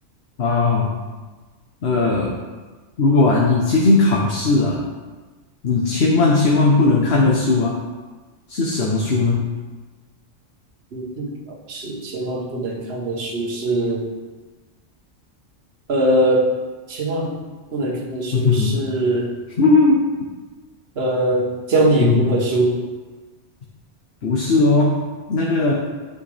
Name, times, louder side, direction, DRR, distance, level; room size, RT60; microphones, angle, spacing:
voice 1, 0.4-0.9 1.8-2.3 3.0-4.8 5.6-7.8 8.5-9.5 18.3-18.8 19.6-20.1 22.0-22.2 24.2-25.0 25.3-25.7, left 3 dB, 65° left, -2 dB, 1.2 m, -17 dB
voice 2, 10.9-14.1 15.9-16.6 16.9-17.4 17.7-19.3 21.0-22.8, right 1 dB, 65° right, -2 dB, 1.3 m, -21 dB
12.0 x 5.0 x 3.3 m, 1.3 s
omnidirectional pair, 1.1 m